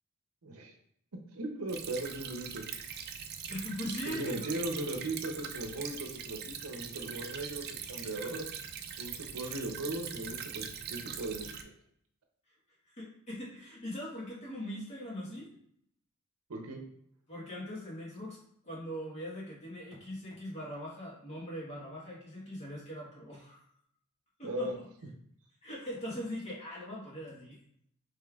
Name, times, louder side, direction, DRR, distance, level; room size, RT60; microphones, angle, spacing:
voice 1, 0.4-0.7 1.1-2.6 4.1-8.5 9.0-11.5 16.5-16.8 24.4-24.7, right 2 dB, 75° right, 4 dB, 0.7 m, -38 dB
Stream / Trickle dribble, 1.7-11.6, right 8 dB, 45° right, 0.4 m, -42 dB
voice 2, 3.5-4.5 12.9-15.5 17.3-18.4 18.6-23.6 24.4-24.7 25.6-27.6, equal, 30° left, -5 dB, 1.3 m, -41 dB
5.1 x 3.2 x 2.4 m, 0.68 s
head